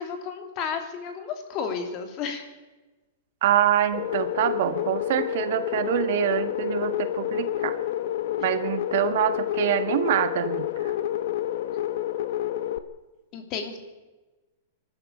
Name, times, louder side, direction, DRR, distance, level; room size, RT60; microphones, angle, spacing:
voice 1, 0.0-2.5 13.3-13.8, left 6 dB, 30° left, 6 dB, 3.0 m, -32 dB
voice 2, 3.4-7.8 8.4-10.9, right 11 dB, 55° right, 10 dB, 1.5 m, -25 dB
sound 1, 3.9-12.8, left 12 dB, 60° left, 1.2 m, -29 dB
23.0 x 13.5 x 8.6 m, 1.2 s
supercardioid pair, 165°, 0 cm